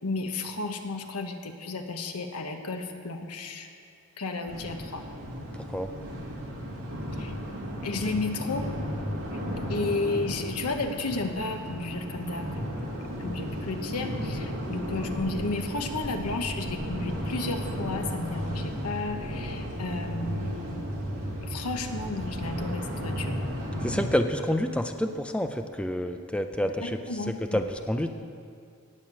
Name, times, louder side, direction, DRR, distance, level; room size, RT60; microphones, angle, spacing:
voice 1, 0.0-3.7 4.2-5.0 7.1-7.3 7.8-8.7 9.7-12.9 13.2-20.8 21.4-23.4 26.8-27.6, left 3 dB, 85° left, 5 dB, 1.2 m, -33 dB
sound 1, 4.5-24.0, equal, 65° right, 2.7 m, -34 dB
voice 2, 23.8-27.0 27.5-28.1, equal, 5° left, 6 dB, 0.5 m, -28 dB
18.5 x 6.6 x 7.5 m, 2.3 s
head